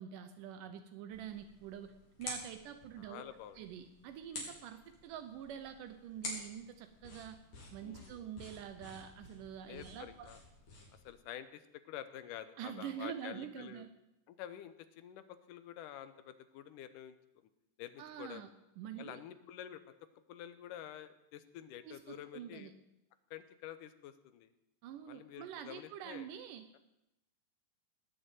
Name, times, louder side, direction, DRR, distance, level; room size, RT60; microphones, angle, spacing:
voice 1, 0.0-1.9 2.2-3.2 3.6-7.4 7.7-10.3 12.6-13.9 18.0-18.5 18.8-19.2 21.8-22.7 24.8-26.6, right 9 dB, 80° right, 8 dB, 2.4 m, -46 dB
sound 1, 1.1-11.1, left 2 dB, 55° left, 4.9 m, -50 dB
voice 2, 3.0-3.6 7.8-8.2 9.7-10.4 11.0-13.9 14.3-17.2 17.8-18.4 19.0-19.8 20.3-22.7 23.3-24.5 25.1-26.3, left 11 dB, 85° left, 12 dB, 2.4 m, -49 dB
18.5 x 6.8 x 9.1 m, 0.88 s
omnidirectional pair, 3.7 m